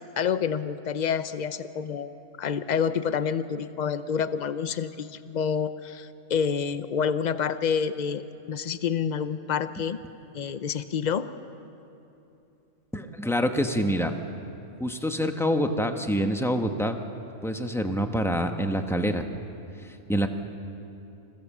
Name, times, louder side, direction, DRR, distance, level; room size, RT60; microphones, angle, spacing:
voice 1, 0.2-2.1 2.4-8.2 8.5-10.0 10.3-11.3, left 7 dB, 60° left, 12 dB, 0.4 m, -28 dB
voice 2, 12.9-14.1 14.8-17.0 17.4-19.3 19.8-20.3, equal, ahead, 5 dB, 0.8 m, -26 dB
26.0 x 16.0 x 7.3 m, 2.9 s
omnidirectional pair, 1.6 m